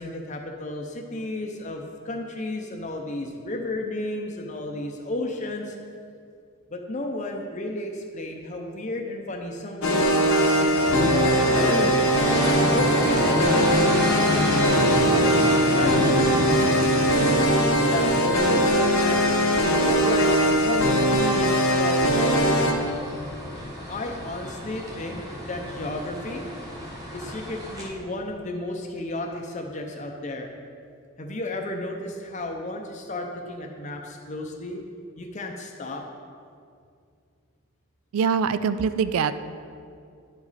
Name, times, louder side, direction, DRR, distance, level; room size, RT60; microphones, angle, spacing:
voice 1, 0.0-5.7 6.7-11.7 12.5-16.9 17.8-19.4 19.8-22.8 23.9-26.5 27.1-30.5 31.2-34.8 35.2-36.0, left 2 dB, 35° left, 2 dB, 0.5 m, -33 dB
sound 1, 9.8-22.7, equal, 75° left, 0.9 m, -21 dB
sound 2, 10.7-27.9, equal, 15° right, 1.1 m, -30 dB
voice 2, 38.1-39.3, right 6 dB, 80° right, 12 dB, 0.3 m, -23 dB
10.0 x 5.0 x 4.1 m, 2.3 s
head